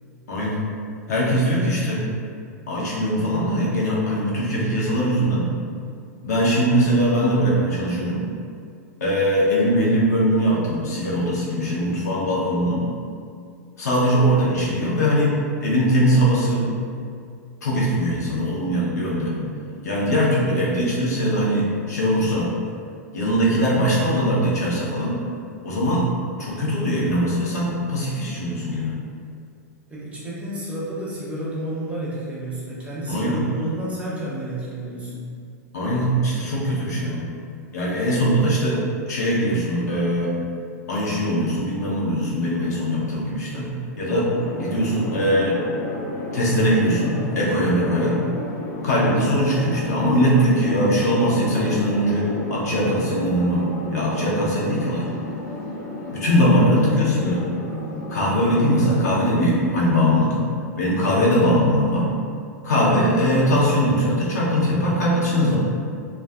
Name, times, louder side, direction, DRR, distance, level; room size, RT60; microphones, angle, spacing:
voice 1, 0.3-0.7 1.1-2.1 2.7-5.5 6.2-8.2 9.0-12.9 13.8-16.7 17.6-19.4 19.8-22.5 23.1-25.2 25.6-26.1 26.4-29.0 33.1-33.4 35.7-37.2 37.7-40.4 40.9-43.7 44.0-44.3 44.6-45.6 46.3-48.2 48.8-53.7 53.9-55.0 56.1-57.5 58.1-60.4 60.8-62.1 62.6-65.6, equal, 75° left, -6 dB, 0.7 m, -21 dB
voice 2, 29.9-35.3, right 1 dB, 15° right, -7 dB, 0.7 m, -30 dB
sound 1, 44.3-59.3, left 2 dB, 40° left, 0.4 m, -32 dB
2.5 x 2.2 x 2.3 m, 2.3 s
hypercardioid pair, 105°, 9 cm